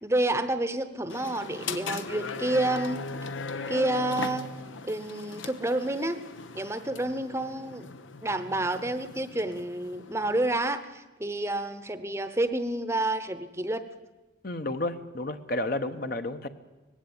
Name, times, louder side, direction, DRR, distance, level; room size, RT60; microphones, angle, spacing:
voice 1, 0.0-3.0 3.7-4.5 4.8-6.2 6.5-7.9 8.2-13.8, right 1 dB, 15° right, 11 dB, 0.8 m, -29 dB
sound 1, 1.1-10.6, left 4 dB, 85° left, 1.0 m, -39 dB
voice 2, 14.4-16.5, left 2 dB, 50° left, 9 dB, 1.1 m, -31 dB
19.5 x 16.0 x 8.7 m, 1.1 s
head